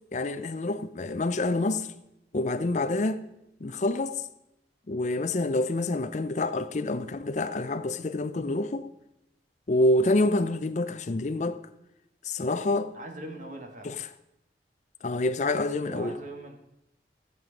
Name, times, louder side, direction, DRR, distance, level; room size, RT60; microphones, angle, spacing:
voice 1, 0.1-1.9 2.3-3.2 3.6-4.2 4.9-8.9 9.7-11.6 12.2-12.9 13.8-14.0 15.0-16.2, left 2 dB, 40° left, 0.5 m, -27 dB
voice 2, 12.9-13.9 15.8-16.6, right 2 dB, 45° right, 1.8 m, -41 dB
16.0 x 7.6 x 5.2 m
head